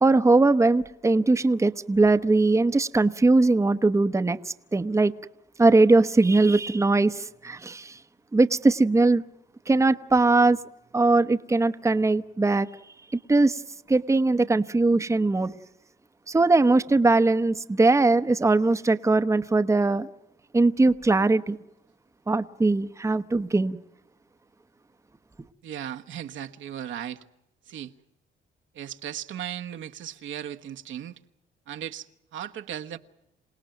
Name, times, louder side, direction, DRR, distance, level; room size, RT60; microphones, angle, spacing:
voice 1, 0.0-5.1 5.6-8.0 8.3-9.2 9.7-10.6 10.9-12.7 13.3-13.6 13.9-15.5 16.3-20.1 20.5-21.6 22.3-23.8, right 3 dB, 15° right, 0.9 m, -21 dB
voice 2, 25.6-27.2 27.7-27.9 28.7-31.2 31.7-33.0, right 10 dB, 75° right, 1.3 m, -36 dB
27.5 x 18.0 x 9.0 m
cardioid pair, 90°, 20 cm